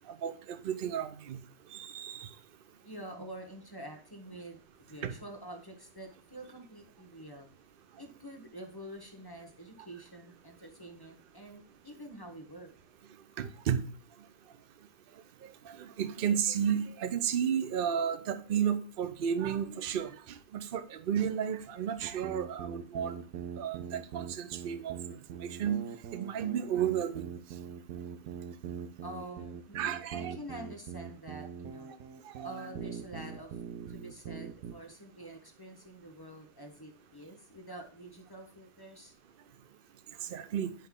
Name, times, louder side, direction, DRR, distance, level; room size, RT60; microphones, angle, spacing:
voice 1, 0.2-1.4 1.7-2.3 5.0-5.1 13.4-13.8 15.6-23.2 23.6-25.8 26.1-27.3 29.7-30.4 32.2-32.5 40.2-40.7, right 8 dB, 50° right, 11 dB, 0.6 m, -33 dB
voice 2, 2.8-4.6 4.9-7.5 8.0-12.7 29.0-31.9 32.4-33.6 33.9-39.1, right 1 dB, 15° left, 3 dB, 1.0 m, -47 dB
sound 1, 22.0-34.7, right 7 dB, 85° right, 1.4 m, -42 dB
10.0 x 5.4 x 3.7 m, 0.41 s
omnidirectional pair, 1.7 m